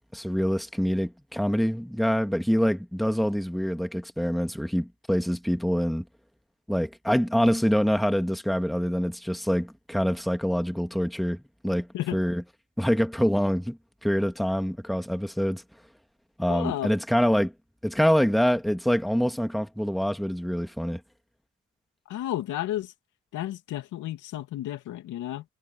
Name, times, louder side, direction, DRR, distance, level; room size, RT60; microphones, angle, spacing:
voice 1, 0.1-6.0 6.7-12.4 12.8-15.6 16.4-17.5 17.8-21.0, equal, ahead, 2.0 m, -25 dB
voice 2, 16.5-16.9 22.1-22.9 23.3-25.4, left 13 dB, 85° left, 2.5 m, -32 dB
cardioid pair, 90°, 30 cm